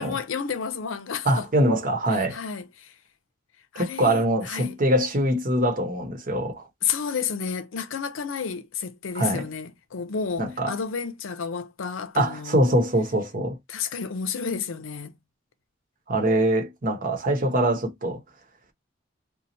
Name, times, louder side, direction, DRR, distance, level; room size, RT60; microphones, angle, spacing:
voice 1, 0.0-1.5 2.2-2.9 3.7-4.7 6.8-12.6 13.7-15.1, left 6 dB, 80° left, 0.6 m, -31 dB
voice 2, 1.2-2.4 3.8-6.6 9.1-9.5 10.4-10.7 12.1-13.6 16.1-18.2, right 1 dB, 45° right, 0.9 m, -23 dB
2.8 x 2.0 x 4.0 m
head